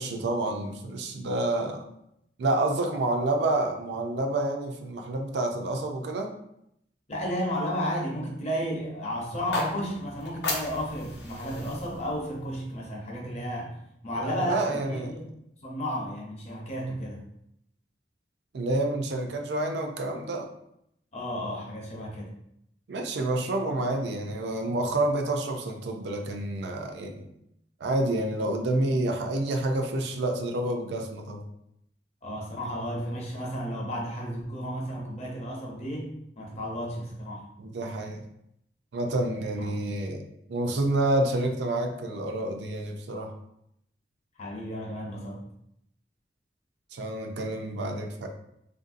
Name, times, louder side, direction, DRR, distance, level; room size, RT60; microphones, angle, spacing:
voice 1, 0.0-1.8 2.4-6.3 14.1-15.1 18.5-20.5 22.9-27.3 27.8-31.4 37.6-38.3 38.9-40.2 40.5-43.3 46.9-48.3, right 2 dB, 75° right, 4 dB, 0.4 m, -28 dB
voice 2, 7.1-13.8 14.0-15.3 15.6-17.2 21.1-22.3 32.2-36.1 36.4-37.4 39.6-39.7 44.4-45.4, equal, 35° left, -2 dB, 0.7 m, -33 dB
sound 1, 9.3-13.4, left 2 dB, 75° left, 0.6 m, -36 dB
3.0 x 2.5 x 2.5 m, 0.76 s
head